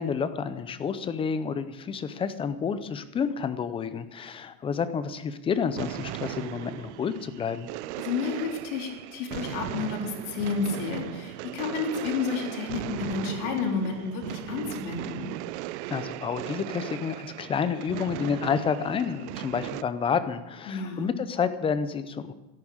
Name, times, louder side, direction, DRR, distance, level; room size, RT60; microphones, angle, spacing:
voice 1, 0.0-7.7 15.9-22.3, left 6 dB, 10° left, 12 dB, 0.5 m, -29 dB
sound 1, 5.6-19.8, right 17 dB, 50° right, 0.6 m, -37 dB
voice 2, 8.0-15.3 20.7-21.2, left 5 dB, 60° left, 2 dB, 4.0 m, -31 dB
13.5 x 11.0 x 8.9 m, 1.0 s
supercardioid pair, 145°, 48 cm